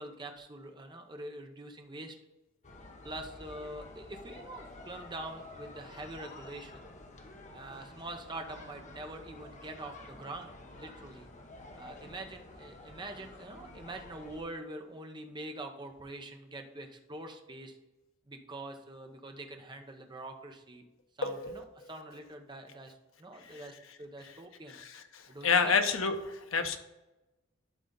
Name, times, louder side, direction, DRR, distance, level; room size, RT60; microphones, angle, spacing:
voice 1, 0.0-2.2 3.0-6.8 7.5-11.3 11.8-17.8 18.3-20.8 21.2-24.8 25.3-25.8, right 1 dB, 20° right, 4 dB, 0.8 m, -44 dB
sound 1, 2.6-14.4, left 2 dB, 35° left, 1.0 m, -50 dB
voice 2, 21.2-21.5 25.4-26.8, left 5 dB, 70° left, 7 dB, 0.9 m, -27 dB
11.5 x 4.0 x 3.9 m, 1.0 s
head